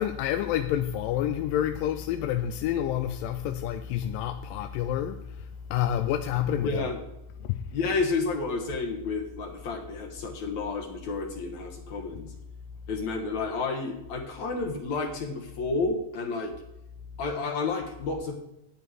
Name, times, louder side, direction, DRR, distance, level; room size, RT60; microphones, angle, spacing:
voice 1, 0.0-6.8 7.4-7.9, left 10 dB, 80° left, 2.2 m, -29 dB
voice 2, 6.6-7.0 7.7-12.3 12.9-16.5 17.2-18.3, left 3 dB, 60° left, 2.4 m, -30 dB
12.5 x 9.6 x 4.9 m
omnidirectional pair, 4.1 m